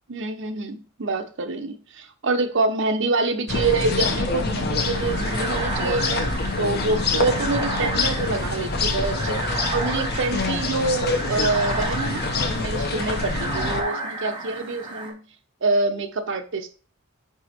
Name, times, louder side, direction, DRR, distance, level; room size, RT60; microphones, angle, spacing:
voice 1, 0.1-6.3 6.6-15.2 15.6-16.7, right 3 dB, 55° right, 8 dB, 0.7 m, -26 dB
sound 1, 3.5-13.8, left 3 dB, 45° left, 0.8 m, -26 dB
sound 2, 4.8-15.1, right 2 dB, 20° right, 1.2 m, -32 dB
5.1 x 4.7 x 4.3 m, 0.38 s
head